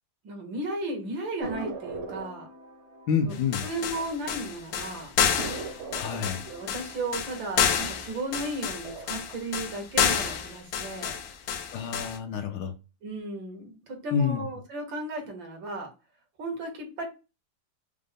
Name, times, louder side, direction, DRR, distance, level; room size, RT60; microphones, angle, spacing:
voice 1, 0.2-2.5 3.2-5.1 6.5-11.2 13.0-15.9 16.4-17.1, right 1 dB, 85° right, 2.1 m, -35 dB
sound 1, 1.4-4.5 4.8-4.9 5.4-8.3 8.7-9.3, right 3 dB, 50° right, 0.9 m, -40 dB
voice 2, 3.1-3.7 5.9-6.5 11.7-12.8 14.1-14.5, left 6 dB, 70° left, 1.1 m, -28 dB
sound 2, 3.3-12.2, left 8 dB, 85° left, 1.4 m, -29 dB
5.2 x 2.1 x 3.3 m
omnidirectional pair, 2.0 m